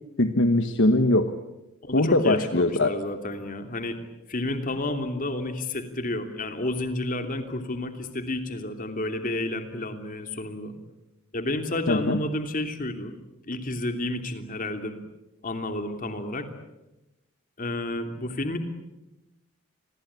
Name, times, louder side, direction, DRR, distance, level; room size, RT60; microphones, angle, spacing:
voice 1, 0.2-1.3 1.9-2.9 11.9-12.2, left 2 dB, 60° left, 8 dB, 1.3 m, -21 dB
voice 2, 1.8-4.0 4.3-10.7 11.3-13.1 13.5-15.0 15.4-16.5 17.6-18.6, left 1 dB, 40° left, 6 dB, 3.0 m, -31 dB
29.0 x 21.5 x 8.4 m, 0.98 s
head